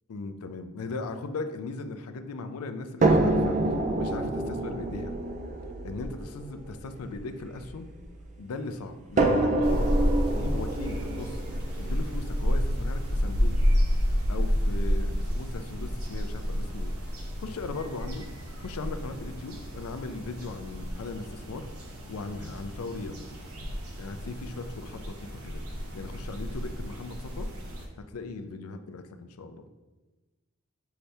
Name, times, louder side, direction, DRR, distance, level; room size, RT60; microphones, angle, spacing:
voice 1, 0.1-3.6 4.0-5.2 5.8-7.9 8.4-11.4 11.8-13.5 14.3-16.9 17.4-18.2 18.6-21.7 22.1-23.3 24.0-25.6 25.9-27.5 28.1-29.0 29.4-29.6, left 3 dB, 80° left, 9 dB, 0.4 m, -38 dB
sound 1, 3.0-8.2 9.2-13.1 14.1-14.2 14.6-14.7, right 2 dB, 35° right, 0.4 m, -28 dB
sound 2, 9.6-27.9, equal, 75° right, 0.8 m, -30 dB
5.7 x 2.7 x 3.3 m, 1.2 s
head